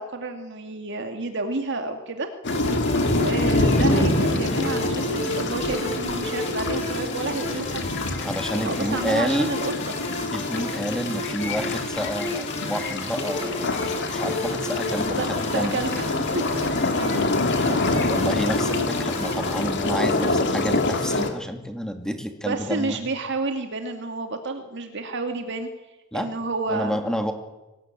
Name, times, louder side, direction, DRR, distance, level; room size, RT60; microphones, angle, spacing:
voice 1, 0.0-2.3 3.1-7.9 8.6-9.7 15.1-17.3 22.5-25.7 26.1-27.2, right 3 dB, 60° right, 5 dB, 2.2 m, -30 dB
sound 1, 2.4-21.3, left 2 dB, 55° left, 2.9 m, -26 dB
sound 2, 2.5-19.6, left 1 dB, 30° left, 4.7 m, -32 dB
voice 2, 8.2-9.5 10.3-15.8 17.7-23.0 26.1-26.3 26.7-27.3, equal, 5° left, 6 dB, 2.5 m, -29 dB
24.0 x 18.5 x 9.0 m, 1.0 s
head